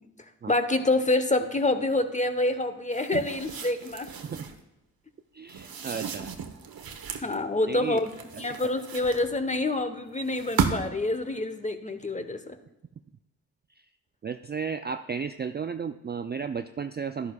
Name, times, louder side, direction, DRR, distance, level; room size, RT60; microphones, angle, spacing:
voice 1, 0.5-4.1 7.2-8.1 8.4-12.6, left 2 dB, 20° left, 9 dB, 1.0 m, -27 dB
sound 1, 2.9-4.6 5.5-7.3 8.0-9.6 10.2-11.1, right 6 dB, 60° right, 1.1 m, -34 dB
voice 2, 5.3-6.3 7.7-8.0 13.8-13.9 14.2-17.3, right 6 dB, 25° right, 9 dB, 0.4 m, -34 dB
11.5 x 10.5 x 2.3 m, 0.96 s
supercardioid pair, 40°, 40 cm